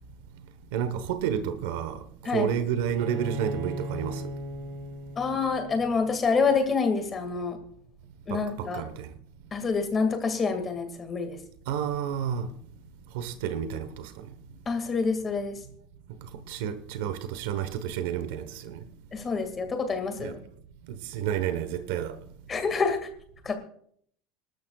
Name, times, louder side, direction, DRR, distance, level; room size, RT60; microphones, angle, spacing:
voice 1, 0.7-2.0 2.3-4.3 8.3-9.1 11.7-12.5 13.1-14.1 16.5-18.8 20.2-20.4 20.9-22.2, right 9 dB, 80° right, 1.1 m, -30 dB
Bowed string instrument, 3.0-6.6, right 1 dB, 50° right, 2.7 m, -38 dB
voice 2, 5.2-7.6 8.3-8.8 9.5-11.4 14.7-15.5 19.1-20.4 22.5-23.0 23.4-23.6, left 4 dB, 20° left, 2.1 m, -27 dB
26.0 x 12.5 x 2.4 m
cardioid pair, 170°, 0 cm